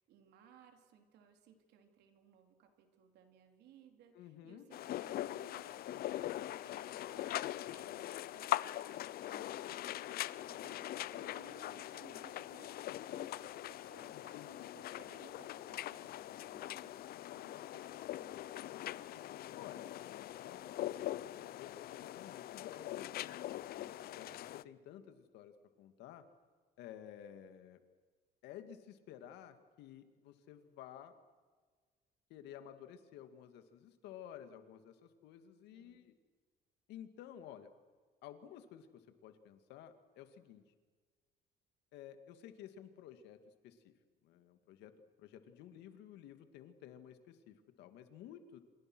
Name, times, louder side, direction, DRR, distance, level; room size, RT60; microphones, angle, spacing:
voice 1, 0.0-19.6 21.2-21.6 23.7-24.3 35.7-36.0, right 8 dB, 80° right, 5 dB, 3.8 m, -63 dB
voice 2, 4.1-4.7 14.1-14.7 19.5-19.9 20.2-23.6 24.2-26.3 26.8-27.8 28.4-31.2 32.3-36.2 36.9-37.7 38.2-40.6 41.9-43.9 44.2-48.6, left 10 dB, 85° left, 9 dB, 2.2 m, -53 dB
sound 1, 4.7-24.6, left 14 dB, 65° left, 0.6 m, -42 dB
28.0 x 27.0 x 6.3 m, 1.5 s
cardioid pair, 110°, 17 cm